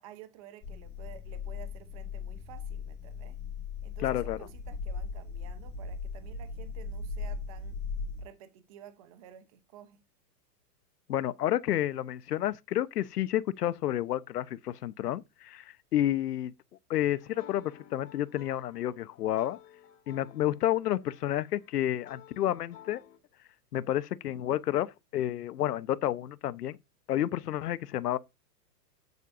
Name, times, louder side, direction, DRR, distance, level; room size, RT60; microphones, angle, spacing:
voice 1, 0.0-3.4 3.8-7.8 8.2-10.0, right 10 dB, 20° right, 0.8 m, -52 dB
sound 1, 0.6-8.2, left 5 dB, 15° left, 4.2 m, -38 dB
voice 2, 4.0-4.4 11.1-16.5 16.9-19.6 20.1-23.0 23.7-26.8 27.1-28.2, left 12 dB, 70° left, 1.1 m, -30 dB
sound 2, 17.1-23.2, left 11 dB, 45° left, 2.1 m, -55 dB
12.0 x 8.2 x 2.6 m
supercardioid pair, 175°, 49 cm